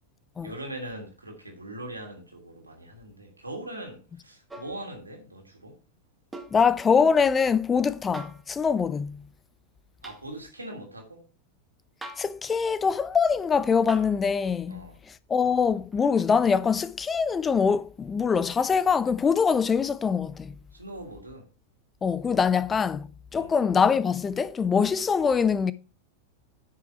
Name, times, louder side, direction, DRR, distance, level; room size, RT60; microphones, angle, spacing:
voice 1, 0.4-5.8 10.0-11.2 14.7-15.0 20.7-21.5 23.3-23.6, right 1 dB, 80° right, 2.8 m, -41 dB
sound 1, 4.5-4.8 6.3-6.6 8.1-8.5 10.0-10.2 12.0-12.4 13.9-14.2 15.9-16.0, right 1 dB, 10° right, 1.8 m, -42 dB
voice 2, 6.5-9.2 12.2-14.8 15.3-20.5 22.0-25.7, left 6 dB, 20° left, 0.5 m, -23 dB
10.5 x 5.9 x 4.4 m
figure-of-eight pair, 90°, 0 cm